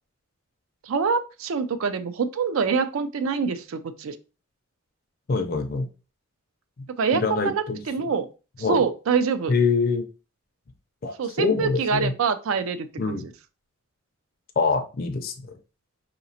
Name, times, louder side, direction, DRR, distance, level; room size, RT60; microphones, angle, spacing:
voice 1, 0.8-4.1 7.0-8.3 8.6-9.5 11.2-13.3, right 5 dB, 80° right, 12 dB, 0.4 m, -25 dB
voice 2, 5.3-5.9 7.2-7.8 8.6-8.8 9.5-10.1 11.0-12.1 13.0-13.2 14.6-15.5, left 4 dB, 45° left, 4 dB, 0.4 m, -24 dB
4.8 x 2.9 x 2.6 m, 0.33 s
head